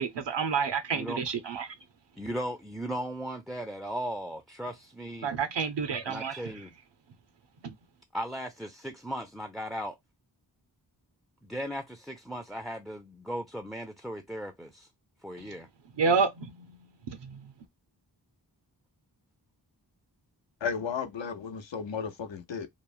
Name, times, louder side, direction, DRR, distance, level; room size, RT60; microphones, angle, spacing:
voice 1, 0.0-1.7 5.2-6.4 7.6-7.7 16.0-16.5 17.1-17.4, right 5 dB, 75° right, 0.6 m, -29 dB
voice 2, 2.2-5.3 6.1-6.7 8.1-10.0 11.4-14.9 15.2-15.7, equal, ahead, 0.3 m, -37 dB
voice 3, 20.6-22.7, left 6 dB, 85° left, 0.7 m, -34 dB
3.0 x 2.0 x 2.3 m
wide cardioid pair, 60°, 44 cm